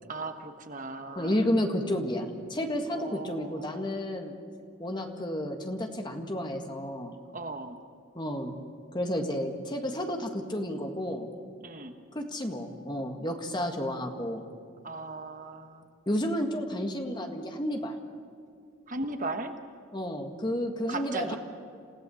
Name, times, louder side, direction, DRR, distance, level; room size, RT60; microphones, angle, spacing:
voice 1, 0.1-1.4 2.9-4.0 7.3-7.8 11.6-12.0 14.8-15.9 18.9-19.6 20.9-21.4, right 2 dB, 40° right, 7 dB, 1.3 m, -37 dB
voice 2, 1.1-4.3 4.8-7.2 8.1-8.5 8.9-11.3 12.1-14.4 16.0-17.9 19.9-21.4, equal, 20° left, 4 dB, 1.8 m, -31 dB
28.0 x 16.5 x 7.1 m, 2.4 s
head